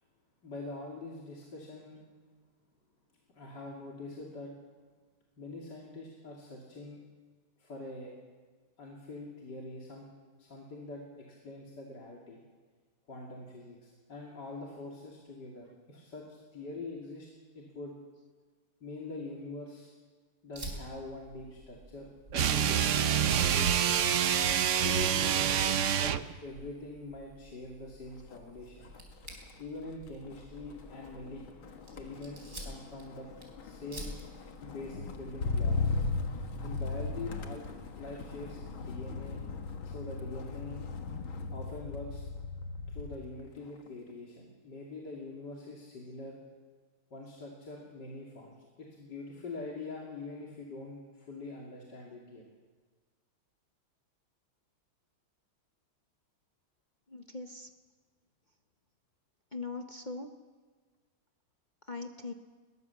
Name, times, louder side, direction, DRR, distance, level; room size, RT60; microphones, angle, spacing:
voice 1, 0.4-2.0 3.3-4.5 5.4-7.0 7.6-8.1 8.8-10.1 10.4-12.4 13.1-17.3 17.5-17.9 18.8-19.9 20.4-23.2 23.5-23.9 24.7-26.1 26.4-28.9 29.6-31.4 31.9-33.3 33.6-34.2 34.6-36.0 36.6-37.7 38.0-39.4 39.8-40.8 41.5-42.2 42.9-46.4 47.1-52.4, left 2 dB, 55° left, -3 dB, 3.3 m, -44 dB
Fire, 20.5-38.8, right 1 dB, 35° right, 4.3 m, -50 dB
sound 1, 22.3-26.3, right 9 dB, 80° right, 0.6 m, -27 dB
Motor vehicle (road), 28.2-28.5 28.8-43.3 43.7-44.1, left 4 dB, 75° left, 2.3 m, -37 dB
voice 2, 57.1-57.7 59.5-60.3 61.9-62.3, left 3 dB, 40° left, 4 dB, 0.7 m, -40 dB
21.5 x 18.5 x 7.2 m, 1.5 s
omnidirectional pair, 2.3 m